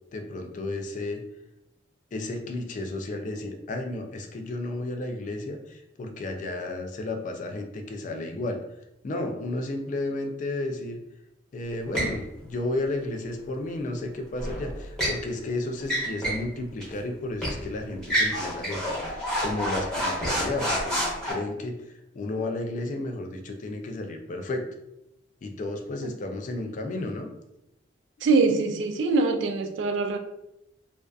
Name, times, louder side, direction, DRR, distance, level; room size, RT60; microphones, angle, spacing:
voice 1, 0.1-1.2 2.1-8.6 9.0-11.0 11.5-24.6 25.4-27.3, left 2 dB, 45° left, 5 dB, 0.3 m, -32 dB
sound 1, 11.9-12.2 14.4-15.2 15.8-16.5 16.8-16.9 17.4-17.6 18.0-21.3, equal, 5° left, 0.7 m, -28 dB
voice 2, 28.2-30.2, right 3 dB, 85° right, 6 dB, 0.3 m, -23 dB
2.4 x 2.3 x 2.2 m, 0.84 s
head